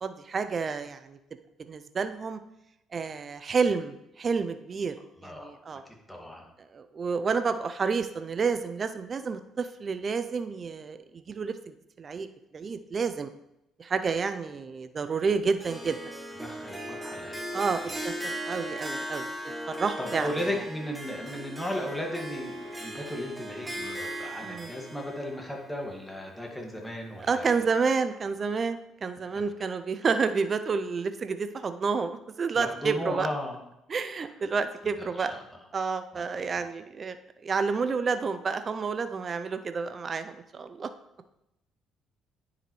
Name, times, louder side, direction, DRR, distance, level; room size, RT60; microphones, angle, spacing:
voice 1, 0.0-1.2 1.6-2.4 2.9-5.0 5.2-5.8 6.7-12.3 12.5-13.3 13.8-16.0 17.5-19.3 19.7-20.3 24.4-24.7 27.2-33.3 33.9-35.3 35.7-37.2 37.4-40.9, right 5 dB, 45° right, 10 dB, 0.5 m, -30 dB
voice 2, 5.2-5.6 6.1-6.4 16.4-17.8 20.0-27.5 32.5-33.6 35.1-35.4 36.1-36.2, equal, 10° left, 0 dB, 1.8 m, -35 dB
Harp, 15.6-26.8, right 1 dB, 15° right, 1.6 m, -38 dB
9.7 x 4.8 x 3.1 m, 0.86 s
hypercardioid pair, 55°, 0 cm